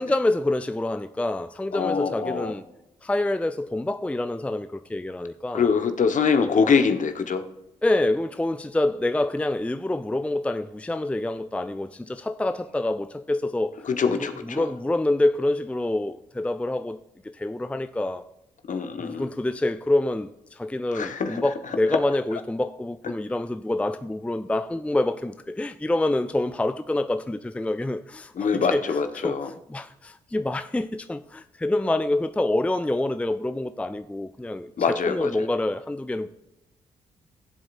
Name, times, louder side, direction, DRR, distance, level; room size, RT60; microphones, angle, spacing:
voice 1, 0.0-2.6 3.0-5.7 6.4-6.5 7.8-13.8 14.1-17.0 17.2-18.2 19.0-36.3, left 2 dB, 10° left, 0.5 m, -27 dB
voice 2, 1.7-2.5 5.5-7.4 14.0-14.7 18.7-19.2 20.9-21.4 28.4-29.5 34.8-35.3, left 5 dB, 50° left, 1.2 m, -24 dB
16.0 x 7.8 x 2.6 m
hypercardioid pair, 45°, 16 cm